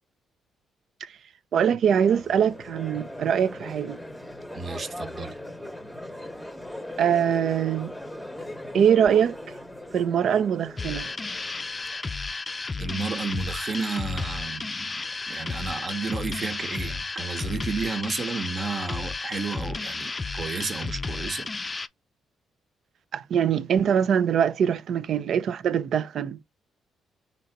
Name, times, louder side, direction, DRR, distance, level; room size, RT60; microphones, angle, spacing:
voice 1, 1.5-4.0 7.0-8.0 8.7-9.4 9.9-11.1 23.1-26.4, right 8 dB, 65° right, 0.4 m, -23 dB
Crowd, 1.9-12.0, left 1 dB, ahead, 0.9 m, -39 dB
voice 2, 4.5-5.3 12.8-21.5, right 4 dB, 45° right, 0.9 m, -32 dB
sound 1, 10.8-21.9, left 3 dB, 25° left, 0.4 m, -33 dB
3.8 x 2.9 x 4.4 m
cardioid pair, 90°, 0 cm